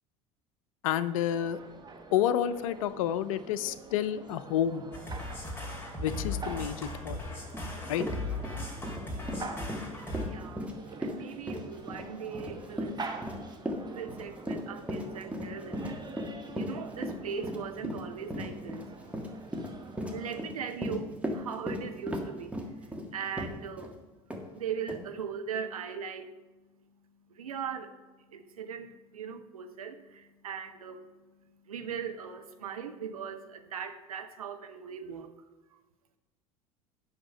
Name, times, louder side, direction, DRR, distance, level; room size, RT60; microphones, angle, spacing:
voice 1, 0.8-1.6 2.1-4.8 6.0-7.2 7.9-8.1, left 10 dB, 70° left, 15 dB, 0.5 m, -29 dB
sound 1, 1.3-20.5, right 3 dB, 25° right, 1.2 m, -46 dB
sound 2, 4.9-10.3, left 2 dB, 10° left, 2.6 m, -38 dB
Run, 7.5-7.6 7.9-23.9 24.3-24.4 24.9-25.0, equal, 5° right, 1.5 m, -37 dB
voice 2, 10.2-10.6 11.0-13.0 13.9-16.0 16.5-18.8 20.1-22.6 23.1-23.9 24.5-26.3 27.3-27.9 28.3-31.0 31.7-35.3, right 7 dB, 80° right, 7 dB, 0.7 m, -39 dB
8.7 x 5.8 x 5.4 m, 1.2 s
figure-of-eight pair, 65°, 18 cm